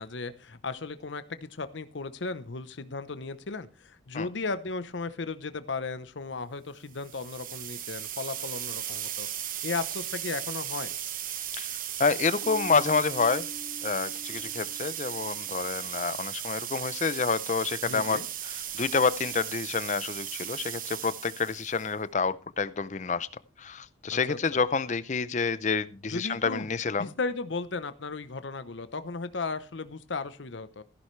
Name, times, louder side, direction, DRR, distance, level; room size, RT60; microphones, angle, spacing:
voice 1, 0.0-9.3 9.6-11.0 17.8-18.2 24.3-24.6 26.1-26.7 27.0-30.8, left 3 dB, 75° left, 12 dB, 0.8 m, -35 dB
sound 1, 6.9-21.9, right 11 dB, 45° right, 0.9 m, -36 dB
voice 2, 12.0-13.5 13.8-23.3 23.6-27.1, left 4 dB, 40° left, 16 dB, 0.6 m, -28 dB
Bass guitar, 12.4-15.9, left 1 dB, 15° left, 2.7 m, -46 dB
15.0 x 11.0 x 3.2 m, 0.34 s
head